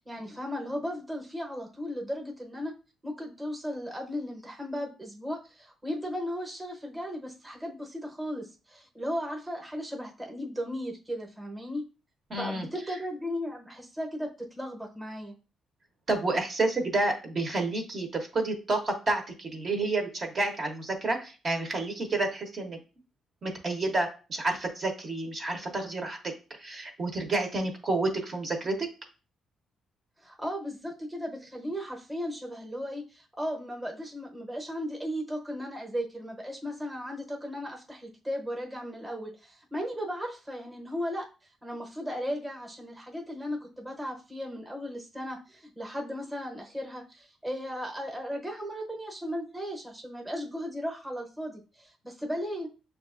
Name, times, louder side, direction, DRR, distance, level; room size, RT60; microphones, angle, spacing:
voice 1, 0.1-2.7 3.0-11.8 12.4-15.3 30.2-41.2 41.6-52.7, equal, 10° right, 0 dB, 0.9 m, -36 dB
voice 2, 12.3-12.7 16.1-22.8 23.4-26.2 26.6-28.9, right 2 dB, 45° right, 3 dB, 0.8 m, -29 dB
6.1 x 2.4 x 2.4 m, 0.34 s
cardioid pair, 90°, 0 cm